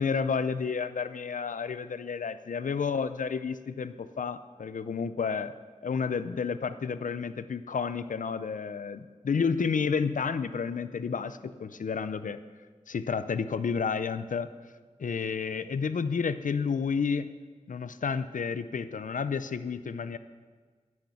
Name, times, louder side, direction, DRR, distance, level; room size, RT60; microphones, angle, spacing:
voice 1, 0.0-5.5 5.8-12.4 12.9-14.5 15.0-17.3 17.7-20.2, left 5 dB, 85° left, 13 dB, 0.5 m, -31 dB
10.0 x 6.6 x 8.2 m, 1.5 s
wide cardioid pair, 70°, 13 cm